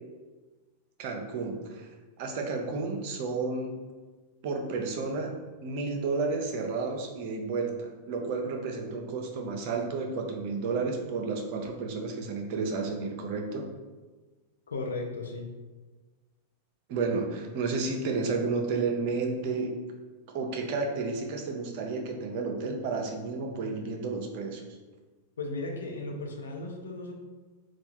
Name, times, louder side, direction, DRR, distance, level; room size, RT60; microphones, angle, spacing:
voice 1, 1.0-1.9 2.2-3.7 4.4-5.3 5.6-13.6 16.9-19.7 20.3-24.6, right 4 dB, 55° right, 2 dB, 0.6 m, -31 dB
voice 2, 14.7-15.5 25.4-27.1, left 3 dB, 80° left, 1 dB, 0.6 m, -35 dB
4.1 x 2.3 x 2.9 m, 1.3 s
hypercardioid pair, 95°, 0 cm